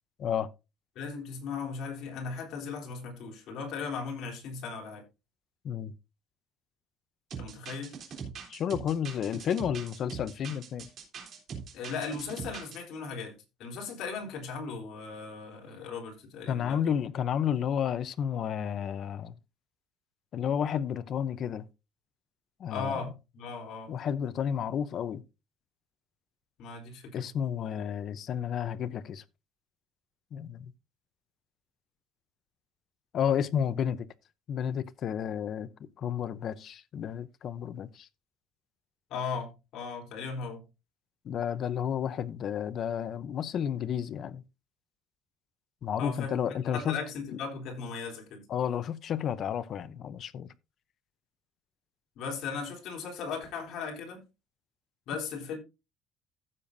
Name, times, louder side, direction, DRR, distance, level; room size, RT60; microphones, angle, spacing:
voice 1, 1.0-5.1 7.4-8.0 11.7-16.8 22.7-23.9 26.6-27.3 39.1-40.7 46.0-48.4 52.2-54.2 55.1-55.6, left 5 dB, 55° left, 3.7 m, -37 dB
sound 1, 7.3-12.8, right 6 dB, 40° right, 3.4 m, -42 dB
voice 2, 8.5-10.9 16.5-19.3 20.3-21.6 22.6-23.0 23.9-25.2 27.1-29.2 30.3-30.7 33.1-34.1 34.5-35.7 36.0-38.1 41.3-44.4 45.8-47.0 48.5-50.5, left 8 dB, 40° left, 0.7 m, -31 dB
15.0 x 7.0 x 2.7 m
cardioid pair, 160°, 0 cm